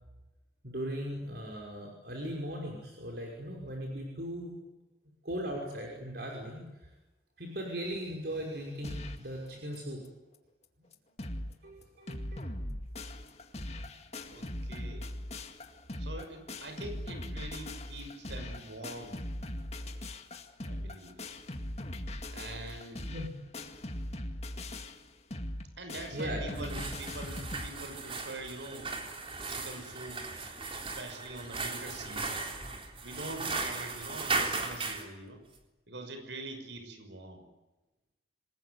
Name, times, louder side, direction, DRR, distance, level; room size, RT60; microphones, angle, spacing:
voice 1, 0.6-4.5 5.2-6.6 7.4-10.0 11.6-12.4 23.1-23.3 26.1-26.8, equal, 60° right, 0 dB, 5.8 m, -38 dB
sound 1, 8.8-9.3 9.7-9.8 10.0-10.1 10.6-10.7 10.9-11.5 11.8-27.7, left 1 dB, 35° left, 2.1 m, -40 dB
voice 2, 14.3-15.1 16.0-19.2 20.6-21.2 22.3-23.0 25.8-28.9 29.5-32.4 33.0-35.4 35.9-37.4, right 2 dB, 85° right, 6 dB, 6.1 m, -44 dB
sound 2, 26.5-35.1, right 3 dB, 30° right, 3.8 m, -37 dB
27.5 x 20.5 x 9.7 m, 1.1 s
head